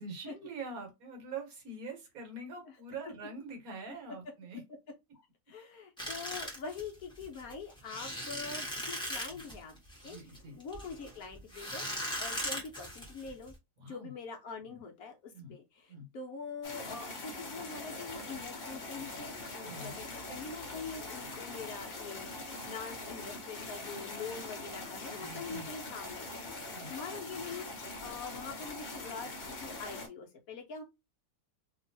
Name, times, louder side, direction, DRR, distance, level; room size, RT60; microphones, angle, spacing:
voice 1, 0.0-4.6 9.3-9.4 10.0-10.6 13.8-14.1 14.7-14.8 15.3-15.5 15.9-16.1 19.6-20.0 25.2-25.7 26.7-26.9, right 3 dB, 60° right, 1.5 m, -44 dB
voice 2, 5.5-9.7 10.0-11.8 12.2-13.5 13.8-30.8, left 5 dB, 65° left, 1.0 m, -44 dB
sound 1, 6.0-13.5, equal, 5° left, 1.0 m, -39 dB
sound 2, 16.6-30.1, left 2 dB, 40° left, 0.6 m, -43 dB
2.9 x 2.8 x 2.6 m
omnidirectional pair, 1.8 m